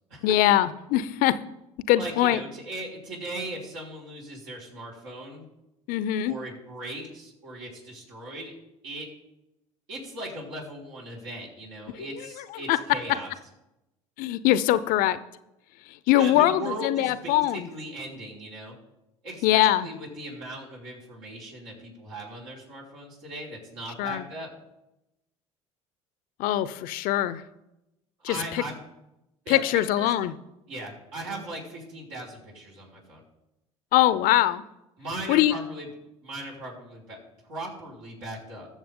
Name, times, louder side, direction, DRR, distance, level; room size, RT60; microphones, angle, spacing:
voice 1, 0.2-1.4 1.9-2.4 5.9-6.3 12.7-12.8 14.2-15.2 16.1-17.7 19.4-19.9 24.0-24.2 26.4-27.4 28.2-28.6 29.5-30.3 33.9-34.6 35.3-35.5, left 13 dB, 60° left, 15 dB, 0.7 m, -22 dB
voice 2, 2.0-5.4 6.2-8.5 8.8-9.1 9.9-13.3 16.2-18.8 19.2-24.5 28.3-28.7 29.5-30.1 30.7-33.2 35.0-35.9 36.2-37.2 37.4-38.7, right 1 dB, 70° right, -4 dB, 5.0 m, -38 dB
20.5 x 7.2 x 3.8 m, 0.91 s
hypercardioid pair, 65°, 17 cm